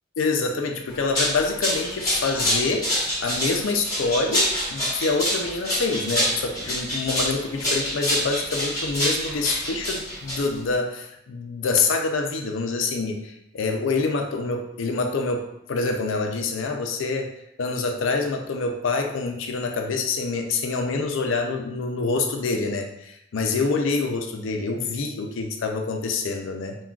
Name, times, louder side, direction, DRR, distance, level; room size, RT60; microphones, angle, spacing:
voice 1, 0.2-15.4 15.7-17.3 17.6-26.8, left 4 dB, 75° left, 3 dB, 0.4 m, -26 dB
sound 1, 0.9-10.7, equal, 15° left, 1.1 m, -26 dB
3.6 x 2.3 x 2.3 m, 0.81 s
head